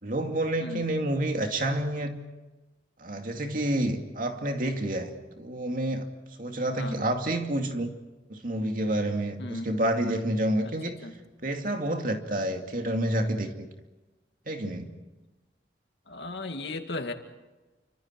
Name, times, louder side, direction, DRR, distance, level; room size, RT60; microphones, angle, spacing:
voice 1, 0.0-2.2 3.0-6.1 6.4-7.9 8.3-11.0 11.4-13.7 14.5-14.9, right 1 dB, 50° right, 4 dB, 2.5 m, -29 dB
voice 2, 9.4-9.7 10.6-10.7 11.0-11.1 16.1-17.1, left 2 dB, 75° left, 5 dB, 2.3 m, -35 dB
29.5 x 25.5 x 4.6 m, 1.1 s
head